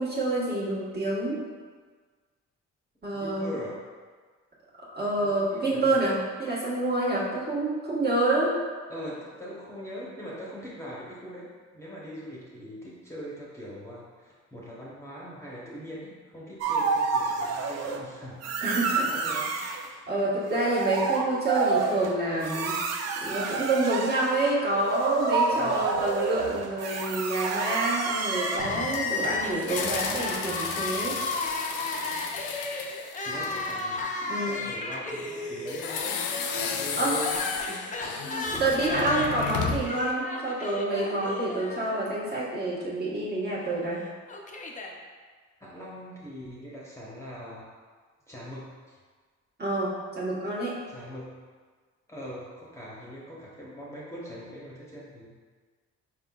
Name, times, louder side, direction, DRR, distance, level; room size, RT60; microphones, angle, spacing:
voice 1, 0.0-1.4 3.0-3.6 4.9-8.5 18.6-19.3 20.1-22.8 23.2-31.2 34.3-34.6 37.0-37.2 38.6-44.0 49.6-50.7, right 2 dB, 35° right, -7 dB, 1.3 m, -28 dB
voice 2, 3.1-3.8 5.2-6.0 8.9-18.6 19.0-19.6 25.5-25.9 33.2-36.3 36.8-38.6 45.6-47.7 48.3-49.0 50.9-51.3 52.1-55.3, equal, 10° left, -7 dB, 0.9 m, -41 dB
sound 1, 16.6-18.0 18.4-19.9 20.3-28.6, right 4 dB, 60° right, 0.5 m, -29 dB
Crying sobbing, 28.2-42.4 42.7-42.8 43.8-44.9, left 2 dB, 25° left, 0.5 m, -34 dB
sound 2, 28.6-34.0 35.7-40.0, left 6 dB, 85° left, 0.5 m, -34 dB
4.8 x 3.6 x 2.3 m, 1.5 s
cardioid pair, 90°, 30 cm